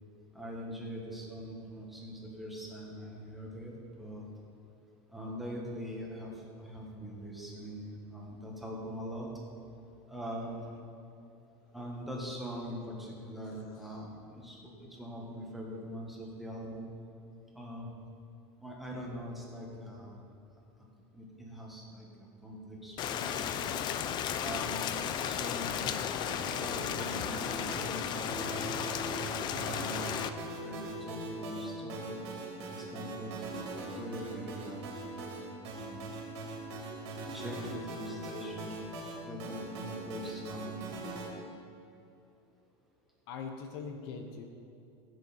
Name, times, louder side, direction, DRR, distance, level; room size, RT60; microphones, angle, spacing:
voice 1, 0.3-3.7 4.0-4.3 5.1-6.3 6.6-9.3 10.1-10.6 11.7-16.9 17.5-17.9 18.6-20.1 21.1-23.7 24.4-28.9 29.6-30.2 30.6-32.2 32.7-33.5 33.9-34.8 35.7-36.1 37.2-38.8 39.2-40.9, equal, ahead, -3 dB, 1.7 m, -43 dB
voice 2, 13.4-13.8 43.3-44.4, left 5 dB, 65° left, 5 dB, 1.1 m, -42 dB
Rain, 23.0-30.3, left 9 dB, 30° left, 0.4 m, -34 dB
sound 1, 26.3-41.3, right 2 dB, 85° right, 2.9 m, -41 dB
15.5 x 6.6 x 4.4 m, 2.7 s
supercardioid pair, 150°, 14 cm